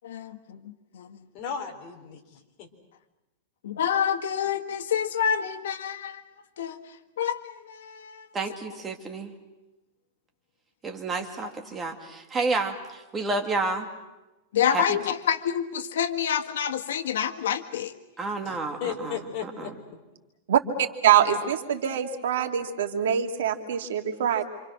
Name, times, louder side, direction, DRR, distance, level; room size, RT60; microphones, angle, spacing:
voice 1, 1.3-2.7 18.4-20.0, left 7 dB, 35° left, 2 dB, 4.0 m, -36 dB
voice 2, 3.6-6.2 6.6-6.8 7.2-7.4 7.8-8.1 14.5-17.9, left 8 dB, 90° left, 7 dB, 1.7 m, -27 dB
voice 3, 8.3-9.3 10.8-13.9 14.7-15.0 18.2-19.7, right 3 dB, 15° right, 4 dB, 2.2 m, -30 dB
voice 4, 21.0-24.4, right 9 dB, 85° right, 4 dB, 2.7 m, -24 dB
28.0 x 27.0 x 6.4 m, 1.1 s
supercardioid pair, 165°, 0 cm